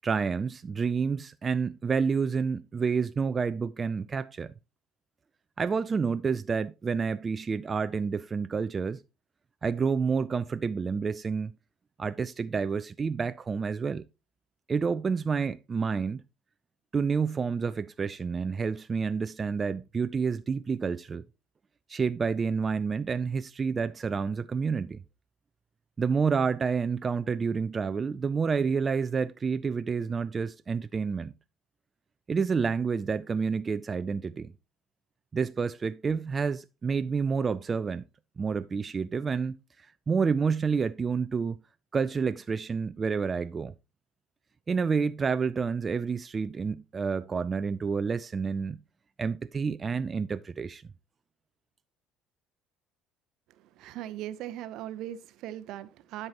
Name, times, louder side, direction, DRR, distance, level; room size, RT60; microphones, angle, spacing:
voice 1, 0.0-4.5 5.6-9.0 9.6-11.5 12.0-14.0 14.7-16.2 16.9-21.2 21.9-25.0 26.0-31.3 32.3-34.5 35.3-38.1 38.4-39.6 40.1-41.6 41.9-43.7 44.7-48.8 49.2-50.8, right 5 dB, 30° right, 0.4 m, -29 dB
voice 2, 53.6-56.3, right 12 dB, 60° right, 0.7 m, -39 dB
11.5 x 5.5 x 2.9 m
hypercardioid pair, 60°, 0 cm